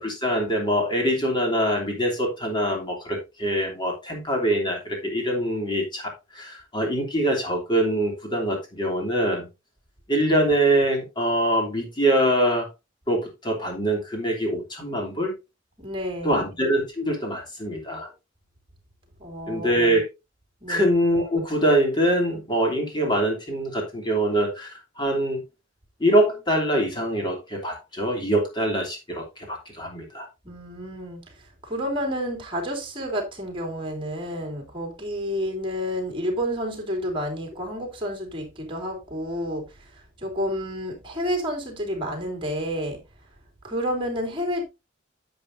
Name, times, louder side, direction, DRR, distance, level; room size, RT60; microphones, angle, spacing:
voice 1, 0.0-9.5 10.1-12.7 13.1-15.3 16.2-18.1 19.5-20.1 20.7-25.4 26.0-30.3, right 1 dB, 25° left, 3.1 m, -24 dB
voice 2, 15.8-16.4 19.2-19.7 20.6-20.9 30.4-43.0 43.6-44.6, equal, 25° right, 3.3 m, -30 dB
10.5 x 7.8 x 2.7 m
head